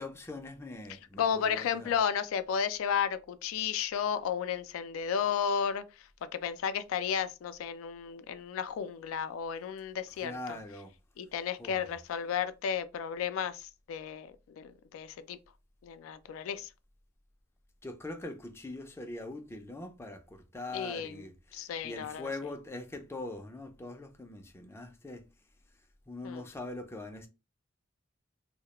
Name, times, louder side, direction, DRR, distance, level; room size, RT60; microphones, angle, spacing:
voice 1, 0.0-1.9 10.2-10.9 11.6-11.8 17.8-25.2 26.1-27.3, left 2 dB, 15° left, 0.4 m, -42 dB
voice 2, 1.2-5.8 6.4-10.6 11.2-15.4 15.8-16.7 20.7-21.3 21.5-22.3 26.2-26.5, left 7 dB, 85° left, 0.3 m, -33 dB
2.3 x 2.1 x 2.9 m
head